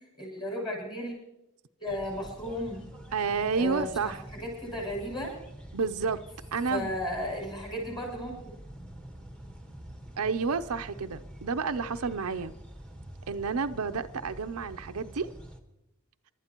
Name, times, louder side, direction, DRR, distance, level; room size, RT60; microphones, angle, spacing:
voice 1, 0.2-1.1 1.8-2.8 3.5-5.3 6.7-8.3, left 1 dB, 20° left, 6.5 m, -34 dB
sound 1, 1.9-15.6, right 1 dB, 5° left, 1.3 m, -47 dB
voice 2, 3.1-4.2 5.7-6.2 6.5-6.9 10.2-12.5 13.3-15.3, right 5 dB, 90° right, 0.6 m, -30 dB
28.0 x 12.0 x 3.0 m
head